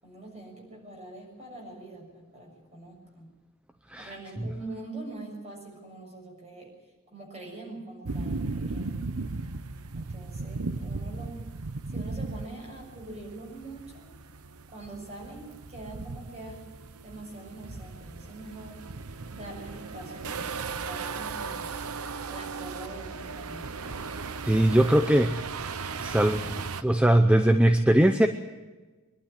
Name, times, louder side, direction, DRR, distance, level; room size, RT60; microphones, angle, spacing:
voice 1, 0.0-3.3 4.0-6.7 7.1-9.1 9.9-11.4 11.9-14.1 14.7-16.6 17.0-18.8 19.3-21.9 22.3-23.7, right 2 dB, 30° right, 0 dB, 6.7 m, -43 dB
sound 1, 8.0-26.8, right 4 dB, 85° right, 0.9 m, -37 dB
voice 2, 24.5-28.3, right 1 dB, 5° right, 7 dB, 0.7 m, -22 dB
23.5 x 12.0 x 10.0 m, 1.2 s
head